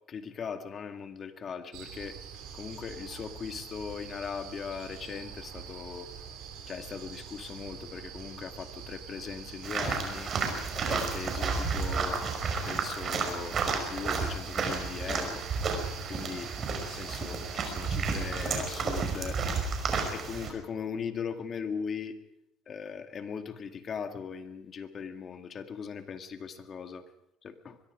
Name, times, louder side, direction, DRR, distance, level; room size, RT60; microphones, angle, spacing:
voice 1, 0.1-2.2 2.5-6.1 6.7-10.3 10.8-12.3 12.7-13.6 13.9-15.5 16.1-16.5 16.9-19.4 20.1-22.2 22.7-27.0 27.4-27.8, left 6 dB, 40° left, 7 dB, 2.2 m, -39 dB
sound 1, 1.7-18.4, right 7 dB, 70° right, 5.4 m, -45 dB
sound 2, 9.6-20.5, right 4 dB, 40° right, 5.6 m, -32 dB
23.5 x 22.5 x 5.0 m, 0.82 s
supercardioid pair, 90°, 0 cm